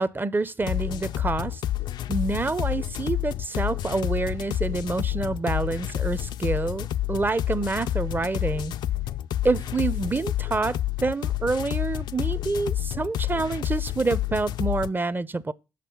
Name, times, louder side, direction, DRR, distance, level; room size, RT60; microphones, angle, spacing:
voice 1, 0.0-1.6 2.1-8.7 9.4-10.8 11.0-15.5, right 3 dB, 25° right, 0.7 m, -27 dB
sound 1, 0.6-14.9, left 13 dB, 70° left, 0.4 m, -29 dB
7.5 x 5.6 x 5.5 m
hypercardioid pair, 45°, 8 cm